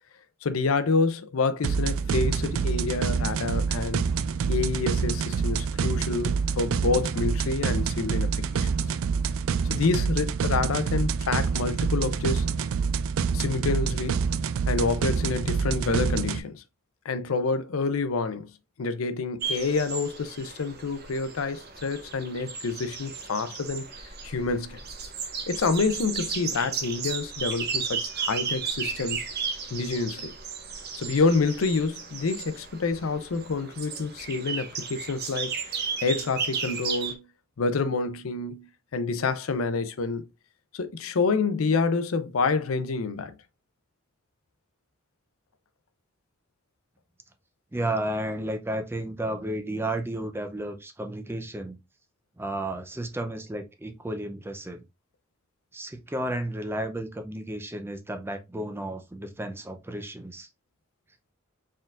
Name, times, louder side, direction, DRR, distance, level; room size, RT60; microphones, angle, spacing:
voice 1, 0.4-4.0 4.5-8.7 9.6-12.5 13.3-14.2 14.7-16.6 17.0-18.5 18.8-23.8 24.2-24.8 25.5-29.3 29.7-30.3 31.0-37.2 37.6-40.3 40.7-43.3, left 4 dB, 90° left, 0.5 m, -28 dB
sound 1, 1.6-16.4, right 5 dB, 80° right, 0.3 m, -27 dB
sound 2, 19.4-37.1, right 6 dB, 50° right, 0.8 m, -34 dB
voice 2, 47.7-51.8 52.4-54.8 55.7-60.5, right 1 dB, 10° right, 0.5 m, -32 dB
4.4 x 3.7 x 2.4 m
head